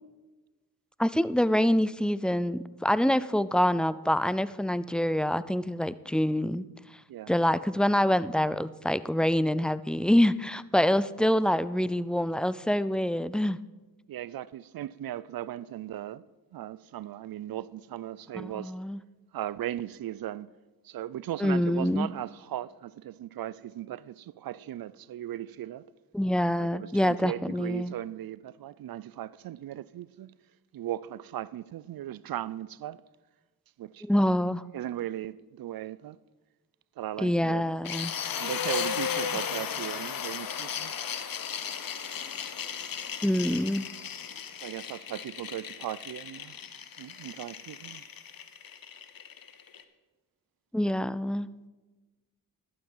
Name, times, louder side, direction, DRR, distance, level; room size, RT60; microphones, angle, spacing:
voice 1, 1.0-6.6 7.3-13.6 18.4-19.0 21.4-22.1 26.1-27.9 34.0-34.6 37.2-38.1 43.2-43.8 50.7-51.5, left 1 dB, ahead, 0.4 m, -26 dB
voice 2, 14.1-16.2 16.5-18.7 19.3-20.5 20.8-25.9 26.6-30.3 30.7-33.0 33.8-34.1 34.7-36.2 37.0-37.9 38.4-40.9 44.6-46.6 47.0-48.0, right 12 dB, 65° right, 0.5 m, -37 dB
sound 1, 37.8-49.8, left 8 dB, 60° left, 1.0 m, -35 dB
11.5 x 8.8 x 5.5 m
cardioid pair, 50°, 39 cm